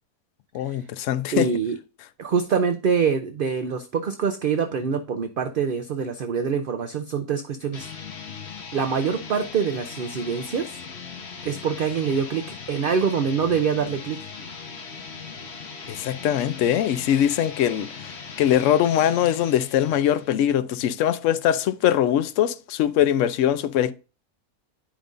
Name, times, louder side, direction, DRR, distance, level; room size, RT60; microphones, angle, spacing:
voice 1, 0.5-1.5 15.9-17.9 18.4-23.9, left 10 dB, 70° left, 0.8 m, -22 dB
voice 2, 1.3-1.8 2.2-7.9 8.7-10.8 11.4-12.4 12.7-14.2, right 6 dB, 60° right, 0.5 m, -25 dB
sound 1, 7.7-20.6, left 5 dB, 50° left, 1.2 m, -39 dB
10.0 x 5.2 x 2.5 m
omnidirectional pair, 1.6 m